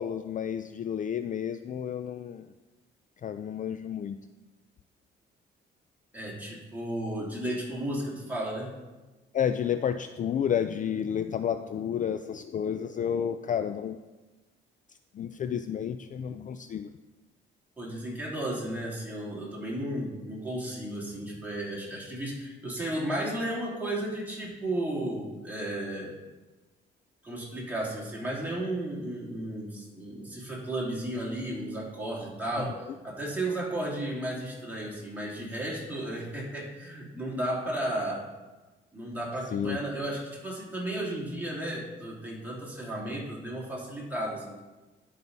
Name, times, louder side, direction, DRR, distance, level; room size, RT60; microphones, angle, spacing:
voice 1, 0.0-2.5 3.2-4.2 9.3-14.0 15.1-16.9 32.6-32.9 39.5-39.8, left 8 dB, 40° left, 10 dB, 0.4 m, -31 dB
voice 2, 6.1-8.7 17.8-26.1 27.2-32.8 33.0-38.2 38.9-44.6, right 1 dB, 10° right, -5 dB, 3.0 m, -34 dB
11.0 x 5.5 x 4.0 m, 1.2 s
cardioid pair, 90°, 20 cm